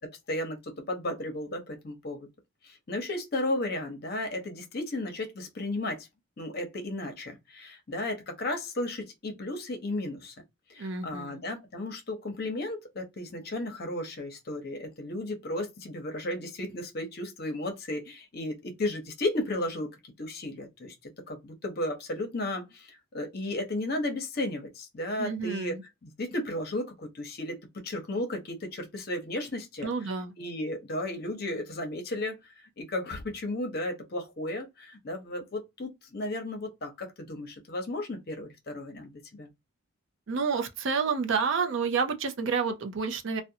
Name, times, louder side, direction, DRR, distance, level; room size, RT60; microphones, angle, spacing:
voice 1, 0.1-2.3 2.6-6.1 6.4-10.3 10.7-20.9 21.3-29.9 30.4-39.5, left 1 dB, 45° left, 0.7 m, -34 dB
voice 2, 10.8-11.4 25.2-25.8 29.8-30.3 40.3-43.4, right 5 dB, 60° right, 0.4 m, -29 dB
2.5 x 2.1 x 2.6 m
head